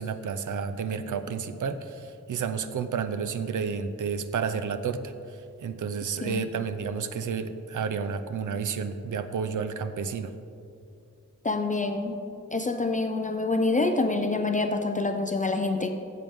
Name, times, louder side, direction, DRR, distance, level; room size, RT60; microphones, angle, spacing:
voice 1, 0.0-10.3, right 6 dB, 85° right, 10 dB, 0.6 m, -31 dB
voice 2, 6.2-6.5 11.4-12.2 12.5-15.9, left 3 dB, 25° left, 5 dB, 0.4 m, -26 dB
14.0 x 7.8 x 3.5 m, 2.6 s
wide cardioid pair, 180°, 30 cm